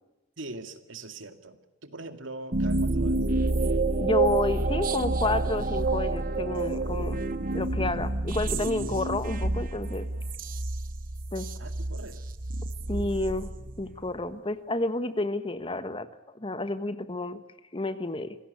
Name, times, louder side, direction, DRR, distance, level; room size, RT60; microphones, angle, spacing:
voice 1, 0.4-3.2 11.6-12.2, right 2 dB, 75° right, 8 dB, 2.2 m, -42 dB
sound 1, 2.5-14.1, right 2 dB, 45° right, 1.1 m, -28 dB
voice 2, 4.0-7.2 7.5-10.1 11.3-11.5 12.9-13.5 13.8-16.1 16.3-17.4 17.7-18.4, left 2 dB, 25° left, 12 dB, 1.3 m, -30 dB
26.0 x 17.5 x 8.3 m, 1.1 s
head